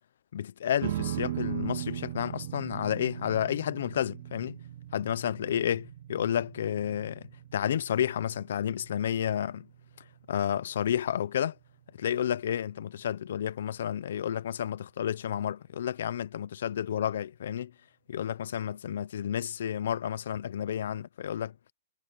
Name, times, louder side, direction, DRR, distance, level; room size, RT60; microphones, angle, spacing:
voice 1, 0.3-4.6 4.9-9.7 10.3-11.6 12.0-17.7 18.1-21.5, left 9 dB, 70° left, 1.1 m, -31 dB
sound 1, 0.8-13.3, right 13 dB, 55° right, 4.6 m, -40 dB
hypercardioid pair, 130°, 0 cm